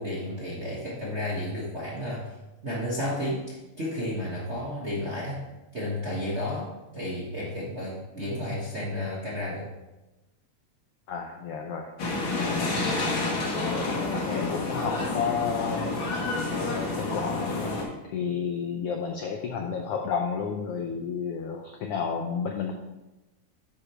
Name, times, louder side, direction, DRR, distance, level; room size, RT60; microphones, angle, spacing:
voice 1, 0.0-2.2 2.6-5.4 5.7-6.7 6.9-9.6, left 1 dB, 40° right, -6 dB, 1.0 m, -32 dB
voice 2, 11.1-11.9 12.4-12.7 13.2-16.2 16.5-22.7, left 6 dB, 85° left, 3 dB, 1.3 m, -32 dB
sound 1, 12.0-17.8, left 3 dB, 50° left, 1.8 m, -29 dB
9.9 x 4.9 x 4.4 m, 1.0 s
omnidirectional pair, 3.5 m